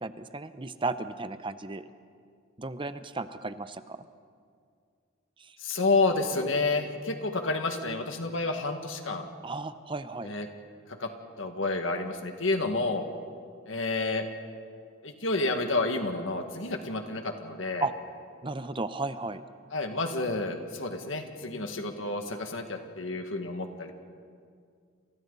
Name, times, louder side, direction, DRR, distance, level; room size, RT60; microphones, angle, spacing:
voice 1, 0.0-1.8 2.6-4.0 5.4-5.5 9.4-10.3 17.8-17.9 18.4-19.4, right 3 dB, 25° right, 11 dB, 0.7 m, -34 dB
voice 2, 5.6-9.3 10.2-10.5 11.0-11.1 11.4-13.0 13.7-14.3 15.0-17.9 19.7-23.9, left 3 dB, 70° left, 5 dB, 2.0 m, -30 dB
29.0 x 28.0 x 4.1 m, 2.2 s
head